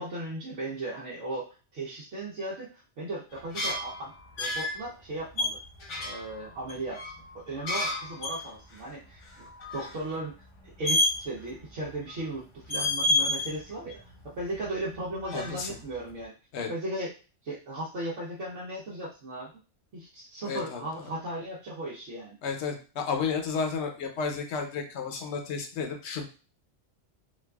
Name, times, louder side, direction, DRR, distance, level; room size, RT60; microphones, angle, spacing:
voice 1, 0.0-4.1 4.4-5.6 6.0-9.2 9.7-10.3 10.6-16.3 16.7-17.1 17.4-19.5 19.9-22.4, right 1 dB, 75° right, -8 dB, 1.2 m, -36 dB
sound 1, 3.4-4.8 5.4-8.4 8.7-8.8 9.2-10.0 10.8-11.5 11.8-12.3 12.6-13.5 13.9-14.9 15.2-16.0, left 2 dB, 90° left, 1.5 m, -30 dB
voice 2, 15.3-15.8 16.5-16.7 20.4-20.8 22.4-26.2, left 5 dB, 70° left, 4 dB, 0.9 m, -32 dB
3.9 x 2.4 x 2.3 m, 0.35 s
omnidirectional pair, 1.2 m